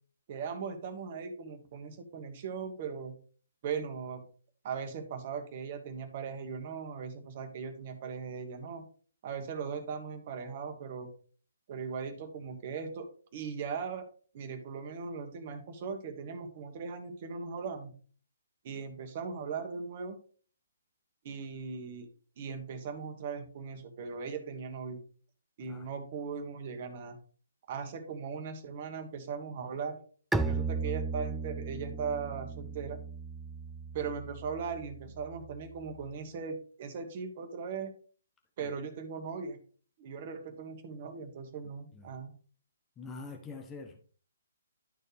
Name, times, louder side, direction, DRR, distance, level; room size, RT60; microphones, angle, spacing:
voice 1, 0.3-3.1 3.6-4.2 4.6-8.8 9.2-11.1 11.7-13.1 13.3-14.0 14.3-17.9 18.6-20.2 21.2-22.1 22.4-25.0 25.6-27.2 27.7-30.0 30.4-33.0 33.9-37.9 38.6-39.6 40.0-42.3, right 5 dB, 40° right, 5 dB, 1.5 m, -39 dB
Bowed string instrument, 30.3-35.9, right 4 dB, 5° right, 0.4 m, -36 dB
voice 2, 43.0-44.0, left 4 dB, 15° left, 2 dB, 0.9 m, -45 dB
12.0 x 4.5 x 3.4 m, 0.42 s
figure-of-eight pair, 140°, 0 cm